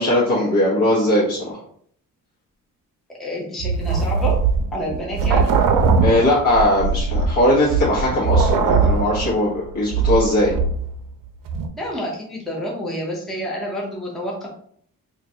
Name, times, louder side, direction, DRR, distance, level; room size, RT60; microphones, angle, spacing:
voice 1, 0.0-1.6 6.0-10.5, left 1 dB, 60° left, -7 dB, 1.1 m, -19 dB
voice 2, 3.1-4.4 4.7-5.5 11.8-14.5, left 1 dB, ahead, -3 dB, 0.5 m, -28 dB
sound 1, 3.6-11.1 11.5-11.7, right 5 dB, 70° right, 0.5 m, -20 dB
4.4 x 2.5 x 2.7 m, 0.63 s
wide cardioid pair, 180°, 34 cm